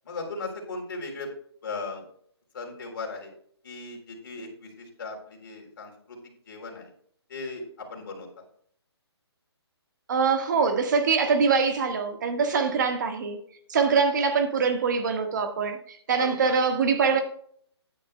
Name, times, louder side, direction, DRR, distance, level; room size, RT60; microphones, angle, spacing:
voice 1, 0.0-1.3 1.6-2.1 2.5-3.3 3.6-6.9 7.3-8.4 12.4-12.6 13.7-14.0 16.2-16.6, left 3 dB, 50° left, 3.6 m, -37 dB
voice 2, 10.1-13.4 13.7-17.2, right 5 dB, 45° right, 1.5 m, -24 dB
13.5 x 9.9 x 2.2 m
hypercardioid pair, 170°, 14 cm